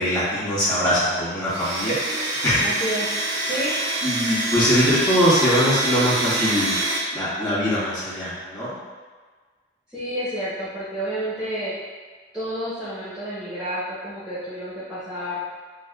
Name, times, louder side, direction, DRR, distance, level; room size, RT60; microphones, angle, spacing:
voice 1, 0.0-2.0 2.4-2.7 4.0-6.8 7.1-8.8, equal, 25° left, -11 dB, 1.4 m, -22 dB
Domestic sounds home sounds, 1.5-7.0, right 2 dB, 70° right, 0.7 m, -26 dB
voice 2, 2.6-3.8 9.9-11.7 12.3-15.4, equal, 5° right, -12 dB, 0.8 m, -30 dB
6.2 x 2.2 x 2.3 m, 1.5 s
head